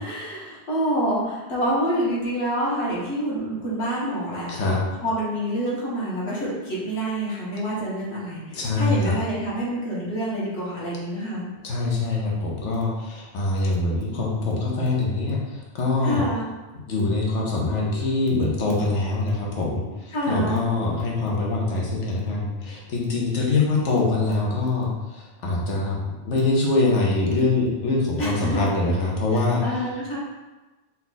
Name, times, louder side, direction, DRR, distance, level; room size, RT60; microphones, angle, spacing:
voice 1, 0.0-4.5 5.0-11.5 16.0-16.5 20.1-20.7 28.2-28.6 29.3-30.2, right 1 dB, 65° left, -7 dB, 1.6 m, -27 dB
voice 2, 4.5-4.8 8.5-9.2 11.6-16.2 16.9-29.6, left 3 dB, 90° left, -3 dB, 1.2 m, -24 dB
4.2 x 2.4 x 4.0 m, 1.1 s
omnidirectional pair, 1.2 m